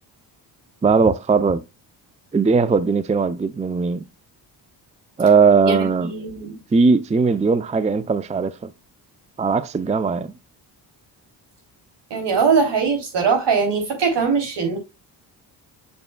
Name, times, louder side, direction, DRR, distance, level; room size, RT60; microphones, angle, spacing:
voice 1, 0.8-1.6 2.3-4.0 5.2-6.1 6.7-8.7 9.4-10.3, right 4 dB, 15° right, 0.5 m, -19 dB
voice 2, 5.6-6.6 12.1-14.8, right 5 dB, 65° right, 3.1 m, -21 dB
6.9 x 6.7 x 2.2 m
cardioid pair, 75°, 44 cm